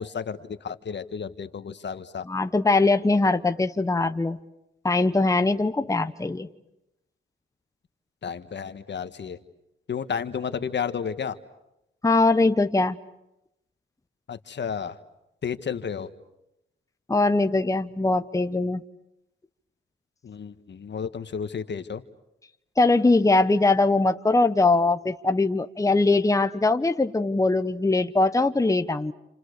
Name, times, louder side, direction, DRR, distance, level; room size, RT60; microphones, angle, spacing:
voice 1, 0.0-2.2 8.2-9.4 9.9-11.4 14.3-14.9 15.4-16.1 20.2-22.0, left 7 dB, 60° left, 10 dB, 1.6 m, -32 dB
voice 2, 2.2-4.4 4.8-6.5 12.0-13.0 17.1-18.8 22.8-29.1, left 3 dB, 15° left, 9 dB, 1.1 m, -21 dB
29.0 x 28.0 x 6.7 m, 0.87 s
cardioid pair, 65°, 21 cm